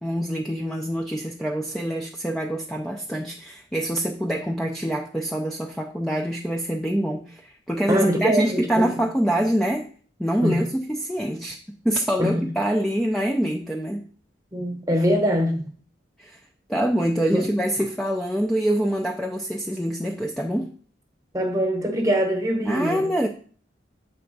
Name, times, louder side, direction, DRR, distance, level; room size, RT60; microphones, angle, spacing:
voice 1, 0.0-9.9 10.2-11.6 11.8-14.0 16.2-16.4 16.7-20.7 22.6-23.3, right 1 dB, 5° left, 0.5 m, -25 dB
voice 2, 7.9-8.9 10.4-10.6 12.2-12.5 14.5-15.6 17.3-17.5 21.3-23.0, equal, 20° right, 1.0 m, -23 dB
7.7 x 3.4 x 5.3 m
head